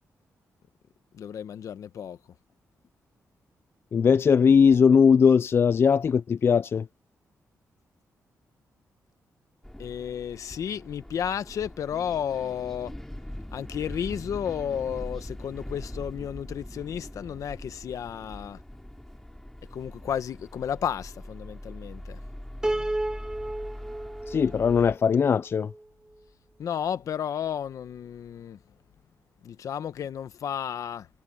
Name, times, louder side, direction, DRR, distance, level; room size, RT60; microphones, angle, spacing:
voice 1, 1.1-2.2 9.8-12.9 13.5-18.6 19.7-22.2 26.6-28.6 29.4-31.1, left 8 dB, 70° left, 1.1 m, -32 dB
voice 2, 3.9-6.9 24.3-25.7, left 6 dB, 45° left, 0.3 m, -20 dB
sound 1, 9.6-25.0, left 1 dB, 5° left, 3.8 m, -42 dB
Piano, 22.6-25.9, right 1 dB, 10° right, 0.6 m, -33 dB
cardioid pair, 100°, 6 cm